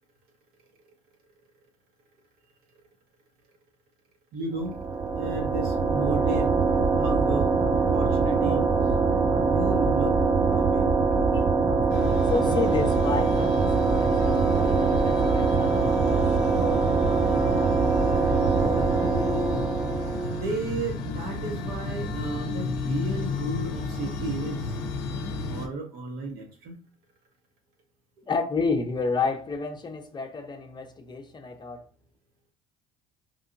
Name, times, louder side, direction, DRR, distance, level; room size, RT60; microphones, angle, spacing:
voice 1, 4.3-4.8 5.1-6.5 7.0-7.5 7.9-8.6 9.4-10.2 10.5-10.9 20.3-24.6 25.5-26.7, right 3 dB, 70° right, 0.9 m, -33 dB
sound 1, 4.6-20.5, right 4 dB, 20° right, 0.4 m, -23 dB
voice 2, 11.3-17.3 28.3-31.8, left 4 dB, 25° left, 0.6 m, -31 dB
sound 2, 11.9-25.7, left 3 dB, 80° left, 0.6 m, -32 dB
2.9 x 2.7 x 2.5 m
supercardioid pair, 85°, 16 cm